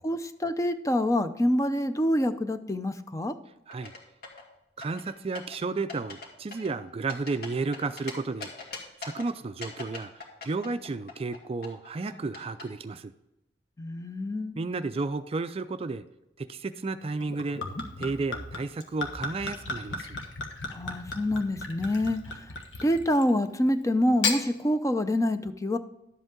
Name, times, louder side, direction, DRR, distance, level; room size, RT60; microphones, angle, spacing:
voice 1, 0.0-3.3 13.8-14.6 20.7-22.5 22.8-25.8, left 1 dB, 15° left, 10 dB, 0.5 m, -26 dB
sound 1, 3.7-4.5 4.8-5.6 5.9-6.3 6.5-8.1 8.4-9.3 9.6-11.4 11.6-12.6, left 4 dB, 55° left, 2.1 m, -40 dB
voice 2, 4.8-8.5 9.0-10.1 10.4-13.1 14.6-16.0 16.4-17.6 18.0-20.2, right 3 dB, 35° right, 11 dB, 0.4 m, -32 dB
Gurgling / Chink clink / Liquid, 17.2-23.4 24.0-24.4, left 3 dB, 85° left, 1.4 m, -35 dB
11.5 x 7.9 x 3.7 m, 0.88 s
head